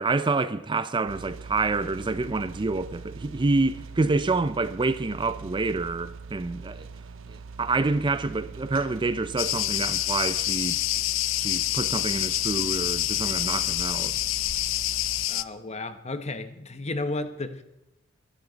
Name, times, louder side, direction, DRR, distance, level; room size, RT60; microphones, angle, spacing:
voice 1, 0.0-6.9 7.3-10.8 11.4-14.2, right 3 dB, 25° right, 0.5 m, -27 dB
sound 1, 1.1-15.3, right 4 dB, 70° right, 0.6 m, -42 dB
sound 2, 8.7-9.1, right 3 dB, 50° right, 3.1 m, -58 dB
Cricket, 9.4-15.4, left 15 dB, 70° left, 0.5 m, -27 dB
voice 2, 15.3-17.6, left 2 dB, 35° left, 1.0 m, -33 dB
23.0 x 11.5 x 4.0 m
head